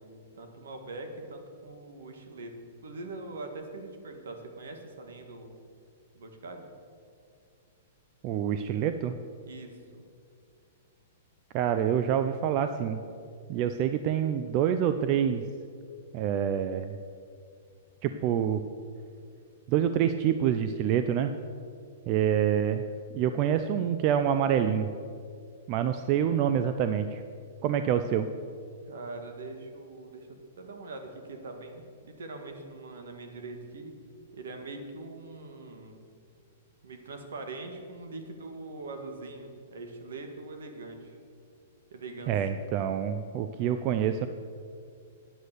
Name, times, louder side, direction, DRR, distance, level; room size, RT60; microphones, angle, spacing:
voice 1, 0.0-5.6 6.1-6.6 9.4-9.8 28.8-33.9 34.3-36.0 36.8-41.2 41.9-42.3, right 2 dB, 85° right, 5 dB, 1.7 m, -42 dB
voice 2, 8.2-9.2 11.5-13.0 13.5-15.4 16.1-17.0 18.0-18.6 19.7-21.3 22.1-22.8 23.1-24.9 25.7-27.2 27.6-28.3 42.3-44.3, right 9 dB, 30° right, 9 dB, 0.4 m, -26 dB
9.7 x 8.1 x 6.7 m, 2.3 s
hypercardioid pair, 160°, 0 cm